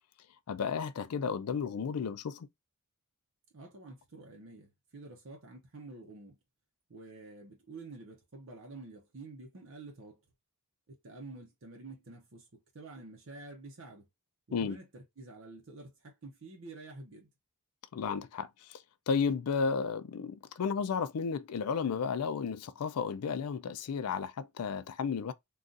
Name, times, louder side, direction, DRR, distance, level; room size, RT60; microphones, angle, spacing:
voice 1, 0.5-2.5 14.5-14.8 17.9-25.3, left 6 dB, 85° left, 0.4 m, -33 dB
voice 2, 3.5-6.4 6.9-10.2 10.9-14.1 14.5-17.3, right 3 dB, 60° right, 0.7 m, -49 dB
3.8 x 2.3 x 2.4 m
head